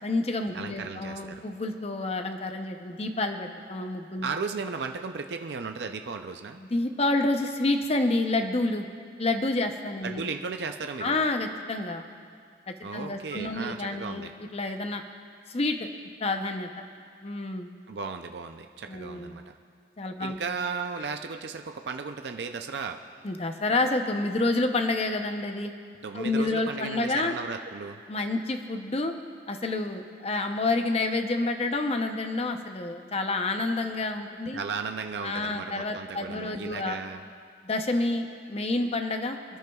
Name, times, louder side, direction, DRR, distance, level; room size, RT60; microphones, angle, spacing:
voice 1, 0.0-4.3 6.6-8.9 9.2-10.2 11.0-12.0 12.7-15.0 15.5-15.9 16.2-16.7 17.2-17.7 18.9-19.4 20.0-20.4 23.2-25.7 26.1-27.3 28.1-29.1 29.5-34.6 35.2-37.0 37.6-39.4, left 2 dB, 35° left, 6 dB, 0.7 m, -29 dB
voice 2, 0.5-1.4 4.2-6.6 10.0-11.2 12.8-14.3 17.9-19.5 20.2-23.0 26.0-28.0 34.5-37.2, right 5 dB, 65° right, 6 dB, 0.5 m, -35 dB
26.5 x 10.5 x 2.3 m, 2.2 s
head